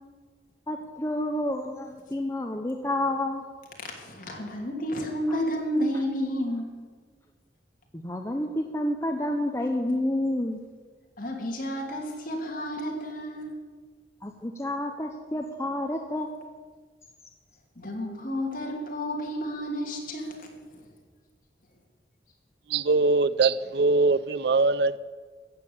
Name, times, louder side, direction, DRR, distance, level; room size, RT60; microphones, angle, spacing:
voice 1, 0.7-3.4 5.3-5.4 7.9-10.6 14.2-16.3, left 1 dB, 15° left, 4 dB, 0.8 m, -29 dB
voice 2, 3.8-6.7 11.2-13.5 17.8-20.5, equal, 50° left, 1 dB, 2.7 m, -31 dB
voice 3, 22.7-25.0, right 3 dB, 65° right, 17 dB, 0.5 m, -22 dB
14.5 x 7.5 x 8.5 m, 1.5 s
head